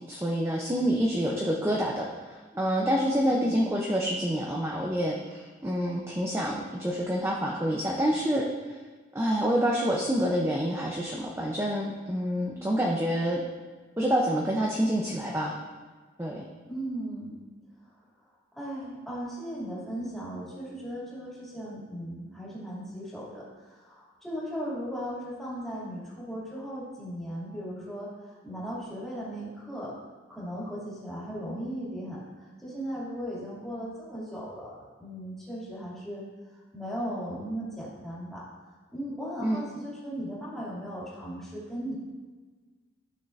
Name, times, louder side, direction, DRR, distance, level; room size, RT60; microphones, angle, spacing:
voice 1, 0.1-8.4 9.1-13.4 14.0-15.5 16.2-16.4 39.4-39.6, equal, 15° right, -2 dB, 0.7 m, -27 dB
voice 2, 3.1-3.6 16.6-17.3 18.5-29.9 30.3-36.2 36.7-38.4 38.9-41.9, equal, ahead, -9 dB, 2.6 m, -37 dB
13.0 x 6.6 x 2.6 m, 1.4 s
head